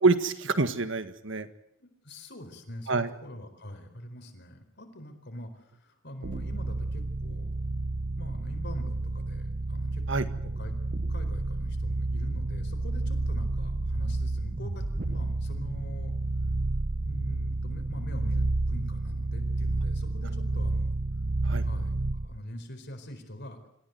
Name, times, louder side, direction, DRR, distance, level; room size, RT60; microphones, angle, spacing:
voice 1, 0.0-1.5 2.9-3.1 10.1-10.3 21.5-21.6, right 3 dB, 60° right, 11 dB, 1.7 m, -26 dB
voice 2, 1.8-7.5 8.2-10.0 10.4-10.7 11.1-16.1 16.9-20.9 21.6-21.9 22.2-23.6, equal, 55° left, 7 dB, 4.5 m, -43 dB
sound 1, 6.2-22.4, right 2 dB, 40° right, 0.8 m, -30 dB
27.0 x 15.5 x 9.4 m, 0.78 s
head